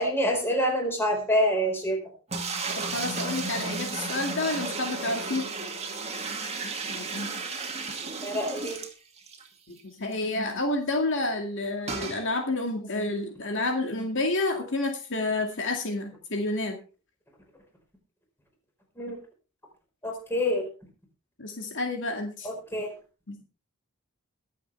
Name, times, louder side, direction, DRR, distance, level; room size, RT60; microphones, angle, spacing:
voice 1, 0.0-2.0 8.2-8.8 19.0-19.2 20.0-20.6 22.4-22.9, equal, 10° left, 1 dB, 4.7 m, -26 dB
sound 1, 2.3-9.5 9.8-9.9 10.1-10.2 11.9-12.2, right 4 dB, 30° right, 2.3 m, -33 dB
voice 2, 2.9-5.5 6.6-7.3 9.7-16.8 21.4-22.5 23.3-23.4, left 2 dB, 60° left, 3 dB, 2.3 m, -29 dB
23.0 x 7.8 x 3.4 m, 0.34 s
head